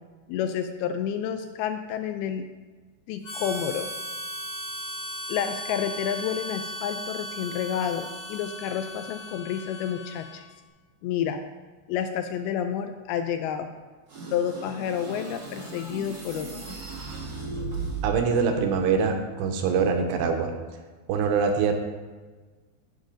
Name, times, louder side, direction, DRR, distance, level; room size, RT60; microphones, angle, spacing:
voice 1, 0.3-2.4 3.1-3.9 5.3-10.5 11.0-11.4 11.9-13.7 14.3-16.5, left 8 dB, 85° left, 7 dB, 2.2 m, -29 dB
Harmonica, 3.2-10.5, equal, 65° left, 5.6 m, -37 dB
sound 1, 14.1-18.4, right 3 dB, 55° right, 1.0 m, -36 dB
voice 2, 18.0-20.5 21.1-21.7, right 5 dB, 85° right, 4 dB, 3.0 m, -24 dB
16.5 x 5.6 x 3.8 m, 1.3 s
omnidirectional pair, 4.9 m